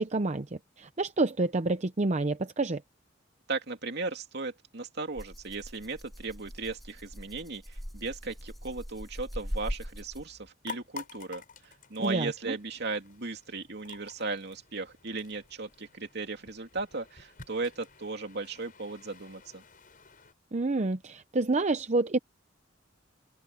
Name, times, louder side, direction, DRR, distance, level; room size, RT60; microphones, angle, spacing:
voice 1, 0.0-2.8 12.0-12.3 20.5-22.2, right 2 dB, 35° right, 0.7 m, -28 dB
voice 2, 3.5-19.6, right 3 dB, 60° right, 2.8 m, -36 dB
Rattle (instrument), 5.1-10.5, equal, ahead, 3.4 m, -40 dB
sound 1, 10.6-20.3, left 5 dB, 45° left, 6.8 m, -50 dB
open air
head